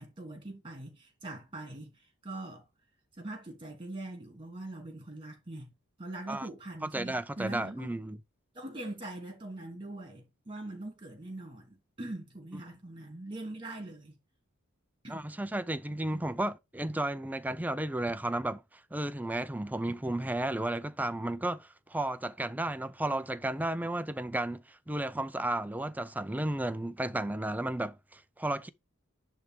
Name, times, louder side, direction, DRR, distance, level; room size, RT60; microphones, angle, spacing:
voice 1, 0.0-2.7 3.2-5.7 6.0-7.9 8.5-14.1 15.0-15.2 16.1-16.2, right 2 dB, 25° right, 3.0 m, -42 dB
voice 2, 6.9-8.2 15.1-28.7, right 1 dB, 10° right, 0.5 m, -33 dB
10.5 x 3.5 x 4.7 m
head